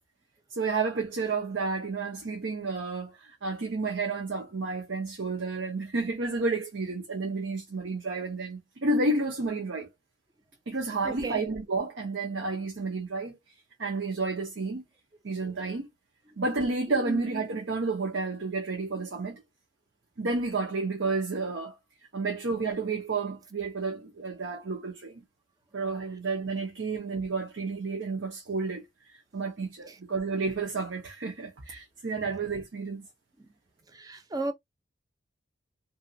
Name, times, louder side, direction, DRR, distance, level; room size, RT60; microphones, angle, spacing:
voice 1, 0.5-9.9 10.7-13.4 13.8-14.8 15.2-15.9 16.4-19.4 20.2-21.8 22.1-25.2 25.7-28.8 29.3-33.0, right 3 dB, 75° right, 0.8 m, -31 dB
voice 2, 11.0-11.5 16.9-17.2 29.9-30.0 33.4-33.5 33.9-34.5, right 2 dB, 20° right, 0.4 m, -35 dB
2.8 x 2.7 x 2.6 m
head